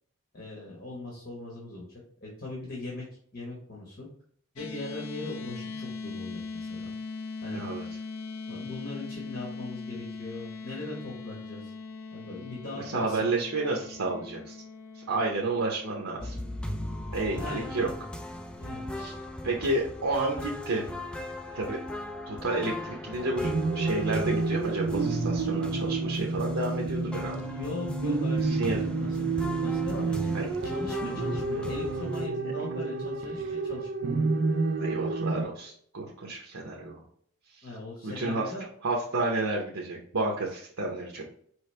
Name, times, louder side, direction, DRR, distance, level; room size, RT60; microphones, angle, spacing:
voice 1, 0.3-3.0 3.3-4.1 4.5-6.9 7.4-7.6 8.5-11.7 12.1-13.3 17.3-18.0 18.6-18.9 27.4-29.3 29.6-30.3 30.6-33.9 37.6-38.7, left 2 dB, 45° left, -3 dB, 1.2 m, -39 dB
sound 1, 4.6-19.0, left 4 dB, 85° left, 0.6 m, -41 dB
voice 2, 7.5-7.8 12.7-14.6 14.9-16.4 17.1-17.9 19.0-19.1 19.4-21.0 21.5-21.8 22.3-27.4 28.4-28.8 30.3-30.5 34.8-37.0 37.5-37.7 38.0-38.4 38.8-41.2, right 2 dB, 85° right, -1 dB, 0.8 m, -31 dB
sound 2, 16.2-32.3, left 1 dB, 5° left, 0.3 m, -38 dB
sound 3, 23.4-35.4, right 3 dB, 60° right, 0.4 m, -29 dB
4.9 x 3.2 x 3.2 m, 0.62 s
head